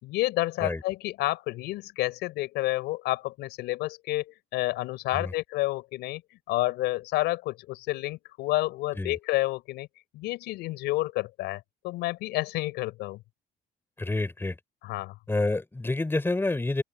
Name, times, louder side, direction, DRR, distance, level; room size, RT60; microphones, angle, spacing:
voice 1, 0.0-9.9 10.1-13.2 14.8-15.1, left 18 dB, 90° left, 5.4 m, -30 dB
voice 2, 14.0-14.6 15.3-16.8, left 2 dB, 15° left, 4.4 m, -28 dB
open air
cardioid pair, 110°, 17 cm